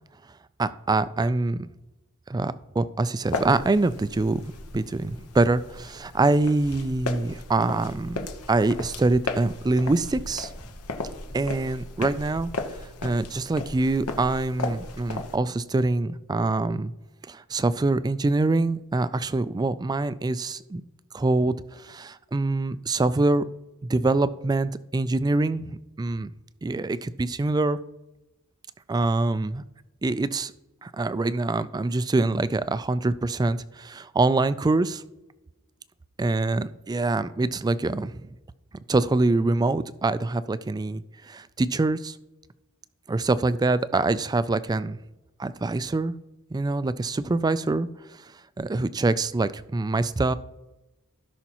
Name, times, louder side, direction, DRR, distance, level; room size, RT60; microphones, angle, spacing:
voice 1, 0.6-1.7 2.3-10.5 11.3-12.5 13.0-16.9 17.3-20.8 21.1-23.4 23.9-25.7 26.0-26.3 26.6-27.8 28.9-29.6 30.0-30.5 30.8-35.0 36.2-38.1 38.9-42.2 43.1-45.0 45.4-46.1 46.5-48.3 48.6-50.3, right 2 dB, 20° right, 14 dB, 0.3 m, -25 dB
sound 1, 3.2-15.4, left 3 dB, 90° left, 1.1 m, -36 dB
16.5 x 5.7 x 3.0 m, 1.0 s
head